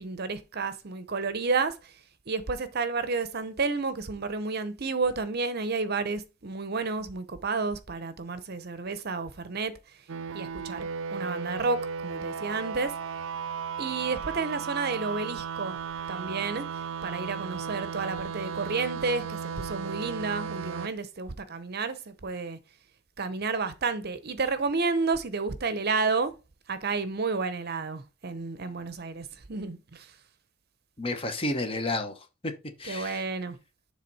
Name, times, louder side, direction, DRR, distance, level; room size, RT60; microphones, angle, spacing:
voice 1, 0.0-1.9 2.3-9.7 10.3-12.9 13.8-15.8 16.1-16.7 17.0-22.6 23.2-26.3 26.7-30.1 32.8-33.6, right 4 dB, 55° right, 0.8 m, -31 dB
sound 1, 10.1-20.9, right 6 dB, 75° right, 0.5 m, -35 dB
voice 2, 31.0-32.5 32.8-33.2, left 2 dB, 30° left, 1.0 m, -31 dB
7.4 x 3.4 x 5.5 m
head